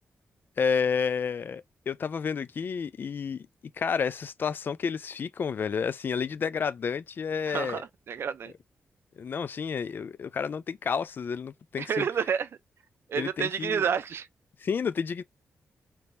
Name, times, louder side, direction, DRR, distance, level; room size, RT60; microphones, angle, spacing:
voice 1, 0.6-3.5 3.7-7.8 9.2-12.1 13.1-13.8 14.6-15.2, left 6 dB, 45° left, 0.3 m, -30 dB
voice 2, 7.5-8.5 11.8-12.5 13.1-14.3, right 7 dB, 60° right, 0.4 m, -29 dB
3.4 x 2.9 x 2.6 m
wide cardioid pair, 140°, 5 cm